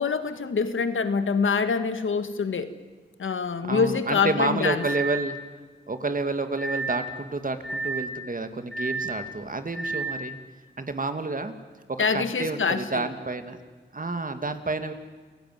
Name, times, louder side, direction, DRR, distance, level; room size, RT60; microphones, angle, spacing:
voice 1, 0.0-2.7 3.2-4.8 12.0-13.1, left 5 dB, 90° left, 10 dB, 1.7 m, -25 dB
sound 1, 3.3-3.4 4.8-5.3 6.6-7.1 7.6-8.2 8.7-9.2 9.7-10.2, right 3 dB, ahead, 2.7 m, -31 dB
voice 2, 3.6-5.4 5.9-10.4 10.8-11.5 11.9-13.6 13.9-14.9, right 3 dB, 45° right, 8 dB, 2.3 m, -29 dB
28.5 x 17.0 x 9.4 m, 1.4 s
wide cardioid pair, 70°, 20 cm